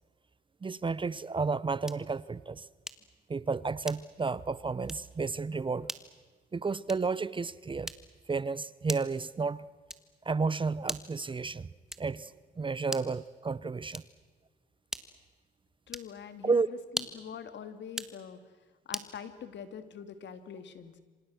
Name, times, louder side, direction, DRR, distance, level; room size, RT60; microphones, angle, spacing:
voice 1, 0.6-2.7 3.3-5.9 6.5-7.9 8.3-9.6 10.2-11.7 12.0-12.3 12.6-14.0 16.4-16.7, right 4 dB, 25° right, 19 dB, 0.7 m, -32 dB
sound 1, 1.8-2.2 2.9-3.2 3.8-4.3 4.8-5.1 5.8-6.1 6.8-7.2 7.8-8.3 8.9-9.2 9.9-10.2 10.8-11.3 11.9-12.2 12.8-13.2 13.9-14.3 14.9-15.3 15.9-16.2 16.9-17.3 17.9-18.2 18.9-19.2, equal, ahead, 1.6 m, -40 dB
voice 2, 15.9-18.4 18.9-21.0, left 8 dB, 65° left, 10 dB, 2.4 m, -44 dB
26.5 x 26.5 x 6.3 m, 1.5 s
cardioid pair, 90°, 20 cm